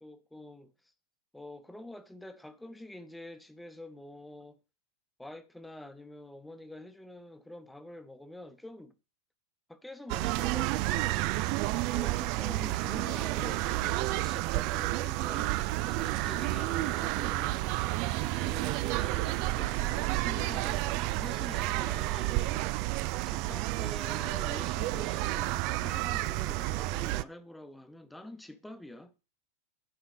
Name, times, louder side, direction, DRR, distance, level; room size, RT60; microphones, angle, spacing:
voice 1, 0.0-0.7 1.3-4.6 5.2-8.9 9.7-17.7 18.2-22.8 23.2-29.1, left 1 dB, 5° left, 1.0 m, -47 dB
sound 1, 10.1-27.2, right 18 dB, 45° right, 0.4 m, -30 dB
10.0 x 4.7 x 6.6 m
figure-of-eight pair, 90°, 0 cm